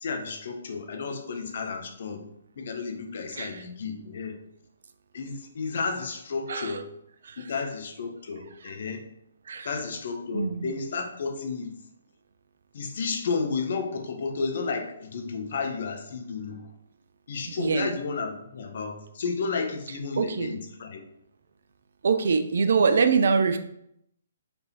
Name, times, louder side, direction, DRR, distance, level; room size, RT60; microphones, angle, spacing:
voice 1, 0.0-2.3 2.6-4.4 5.1-6.9 7.4-9.1 9.6-11.7 12.7-16.7 17.3-21.0, left 4 dB, 55° left, 5 dB, 0.7 m, -32 dB
voice 2, 10.3-10.7 17.6-17.9 20.2-20.5 22.0-23.6, right 5 dB, 60° right, 9 dB, 0.4 m, -23 dB
4.2 x 3.3 x 2.8 m, 0.74 s
figure-of-eight pair, 130°, 0 cm